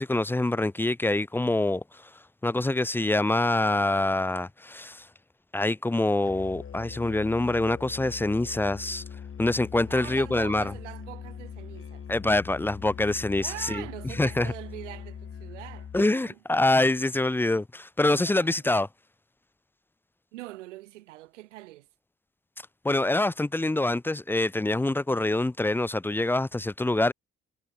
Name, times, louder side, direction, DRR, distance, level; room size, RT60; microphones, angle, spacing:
voice 1, 0.0-2.1 2.4-5.1 5.5-9.0 9.4-10.7 12.1-13.8 14.2-14.5 15.9-18.9 22.8-27.1, left 2 dB, 5° left, 0.4 m, -25 dB
Musical instrument, 6.2-16.1, left 7 dB, 35° left, 1.4 m, -41 dB
voice 2, 9.9-12.1 13.4-16.4 18.1-18.6 20.3-21.9, right 17 dB, 80° right, 3.3 m, -43 dB
hypercardioid pair, 45°, 36 cm